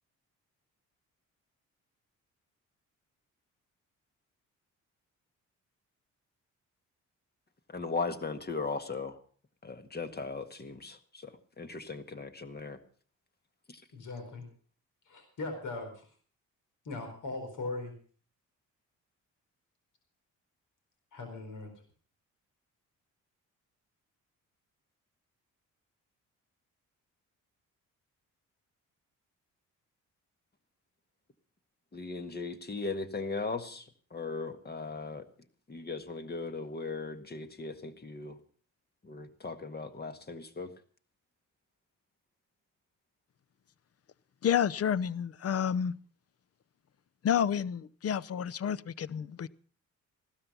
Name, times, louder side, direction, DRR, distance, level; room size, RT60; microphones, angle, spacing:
voice 1, 7.7-9.2 9.6-12.8 13.7-13.8 31.9-35.3 35.7-38.4 39.0-40.7, left 4 dB, 30° left, 1.8 m, -38 dB
voice 2, 13.9-14.5 15.0-16.1 16.8-17.9 21.1-21.7, left 2 dB, 70° left, 4.6 m, -39 dB
voice 3, 44.4-45.9 47.2-49.5, left 8 dB, 50° left, 0.7 m, -30 dB
15.5 x 12.5 x 5.6 m
cardioid pair, 85°, 31 cm